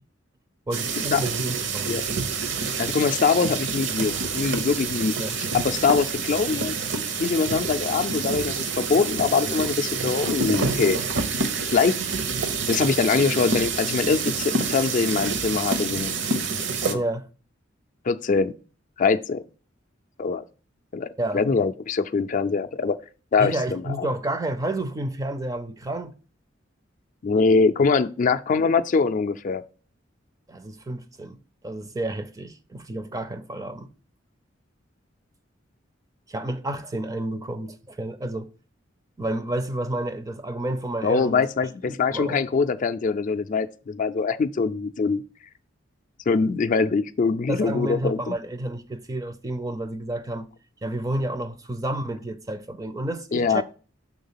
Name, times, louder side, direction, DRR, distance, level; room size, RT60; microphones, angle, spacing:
voice 1, 0.7-2.0 5.2-5.4 16.9-17.3 21.2-21.4 23.4-26.1 30.5-31.4 31.6-33.9 36.3-38.5 39.2-41.4 41.8-42.4 47.5-50.5 50.8-53.6, right 1 dB, 20° right, 0.4 m, -30 dB
sound 1, 0.7-16.9, right 4 dB, 65° right, 0.7 m, -27 dB
voice 2, 2.8-5.1 5.5-6.7 7.2-11.0 11.7-12.0 12.7-16.1 16.8-17.0 18.1-18.5 19.0-19.4 20.2-20.4 20.9-21.1 21.3-23.0 23.3-24.1 27.2-29.6 41.0-45.2 46.3-48.4 53.3-53.6, left 4 dB, 40° left, 0.4 m, -23 dB
6.0 x 3.6 x 5.6 m
head